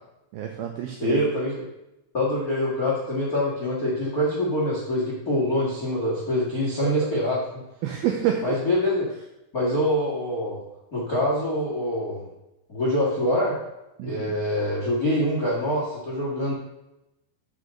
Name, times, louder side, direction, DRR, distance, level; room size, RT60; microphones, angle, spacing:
voice 1, 0.3-1.2 6.8-7.2 7.8-8.6 14.0-14.4, right 9 dB, 85° right, 2 dB, 2.2 m, -28 dB
voice 2, 1.0-1.6 2.1-7.4 8.4-9.1 9.5-10.6 10.9-12.2 12.7-13.6 14.0-16.5, left 1 dB, 80° left, -5 dB, 0.8 m, -25 dB
6.7 x 6.5 x 6.5 m, 0.90 s
omnidirectional pair, 5.4 m